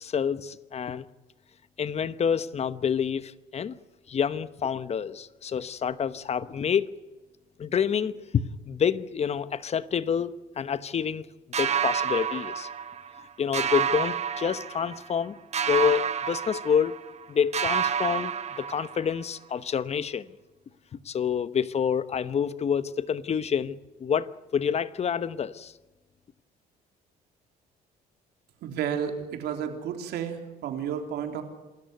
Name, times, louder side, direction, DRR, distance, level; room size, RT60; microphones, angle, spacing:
voice 1, 0.0-1.1 1.8-3.7 4.1-6.9 7.6-11.3 11.6-12.7 13.4-15.4 15.7-17.0 17.3-18.3 18.6-20.3 21.0-25.7, left 7 dB, 40° left, 1.0 m, -28 dB
sound 1, 11.5-13.2 13.5-15.2 15.5-17.3 17.5-19.2, right 8 dB, 40° right, 1.3 m, -29 dB
voice 2, 28.6-31.4, right 8 dB, 75° right, 3.6 m, -32 dB
27.0 x 14.0 x 9.3 m
cardioid pair, 110°, 17 cm